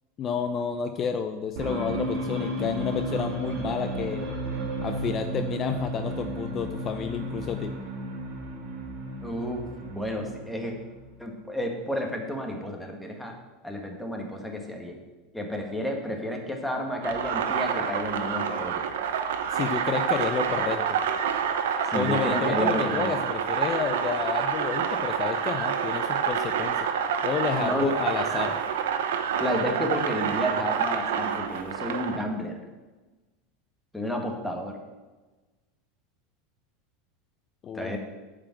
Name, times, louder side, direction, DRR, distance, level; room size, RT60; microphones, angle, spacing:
voice 1, 0.2-4.3 4.8-7.7 19.5-20.8 21.9-26.8 27.2-28.6 37.6-37.9, left 7 dB, 35° left, 8 dB, 0.6 m, -30 dB
sound 1, 1.6-11.2, right 2 dB, 60° right, 3.4 m, -33 dB
voice 2, 9.2-10.8 11.2-13.4 13.6-15.0 15.3-18.8 21.9-23.1 27.6-27.9 29.4-32.6 33.9-34.8 37.7-38.0, equal, 5° left, 2 dB, 1.8 m, -31 dB
sound 2, 17.0-32.2, right 7 dB, 85° right, 0.9 m, -28 dB
8.7 x 5.1 x 7.4 m, 1.2 s
supercardioid pair, 115°, 0 cm